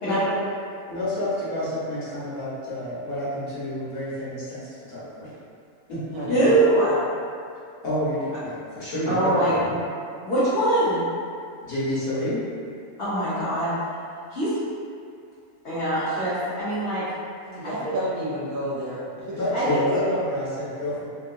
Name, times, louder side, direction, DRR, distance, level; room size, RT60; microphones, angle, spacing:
voice 1, 0.0-0.4 0.9-5.3 5.9-6.0 7.8-9.8 11.7-12.4 19.4-21.0, left 1 dB, 80° left, -11 dB, 1.7 m, -28 dB
voice 2, 6.3-7.0 9.1-9.6 10.2-11.0 13.0-13.7 14.3-14.5 15.6-17.0 17.6-17.9 19.5-19.8, right 1 dB, 50° left, -14 dB, 1.1 m, -23 dB
voice 3, 17.5-19.4, equal, 65° right, -7 dB, 1.2 m, -31 dB
3.6 x 2.3 x 2.7 m, 2.3 s
omnidirectional pair, 1.6 m